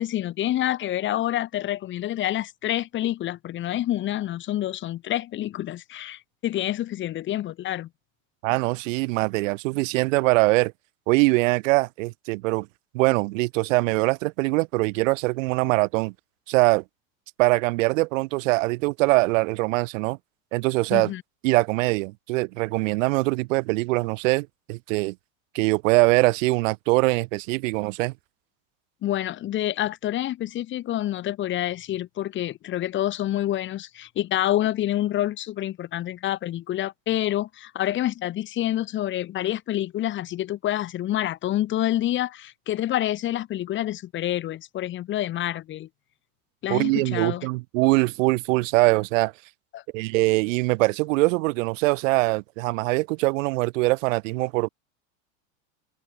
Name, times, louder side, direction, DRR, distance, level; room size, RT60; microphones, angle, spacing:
voice 1, 0.0-7.9 20.9-21.2 29.0-45.9 46.6-47.5 49.7-49.8, left 13 dB, 30° left, 1.2 m, -27 dB
voice 2, 8.4-10.7 11.1-12.7 12.9-16.1 16.5-16.8 17.4-20.2 20.5-21.1 21.4-25.1 25.5-28.1 46.7-49.3 49.9-54.7, right 23 dB, 70° right, 1.0 m, -22 dB
supercardioid pair, 150°, 41 cm